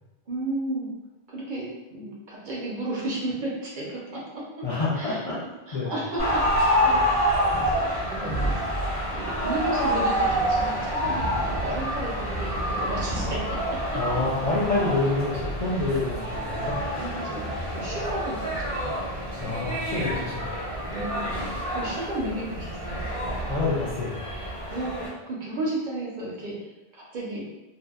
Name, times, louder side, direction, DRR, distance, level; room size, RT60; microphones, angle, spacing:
voice 1, 0.3-0.9 1.3-4.2 4.9-5.2 5.7-7.0 7.7-8.7 9.1-13.6 17.0-18.9 20.9-23.1 24.7-27.4, right 1 dB, 55° right, -5 dB, 0.7 m, -33 dB
voice 2, 4.6-5.4 5.7-5.9 13.9-16.8 19.4-20.5 23.5-24.2, left 3 dB, 50° left, -9 dB, 0.4 m, -27 dB
sound 1, 6.2-25.1, equal, 35° left, 0.9 m, -27 dB
2.6 x 2.0 x 2.3 m, 1.0 s
omnidirectional pair, 1.1 m